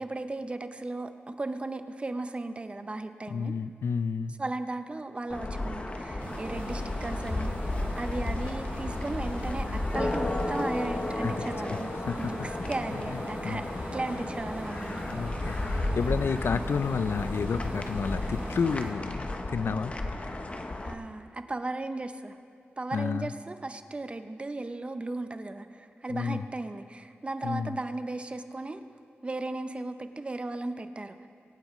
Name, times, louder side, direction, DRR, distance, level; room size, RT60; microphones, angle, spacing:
voice 1, 0.0-3.5 4.4-11.9 12.2-13.7 13.9-15.0 16.0-16.2 20.8-22.4 22.8-28.8 29.2-31.3, right 2 dB, 25° right, 9 dB, 0.6 m, -36 dB
voice 2, 3.3-4.4 11.2-11.3 12.0-12.5 12.9-13.6 15.1-19.9 20.2-20.5 22.9-23.3 26.1-26.4 27.4-27.8, left 5 dB, 70° left, 13 dB, 0.4 m, -31 dB
sound 1, 5.3-20.9, left 2 dB, 30° left, 0.8 m, -33 dB
sound 2, 6.2-18.9, right 2 dB, 65° right, 3.7 m, -41 dB
25.0 x 9.0 x 3.1 m, 2.5 s
wide cardioid pair, 125°, 4 cm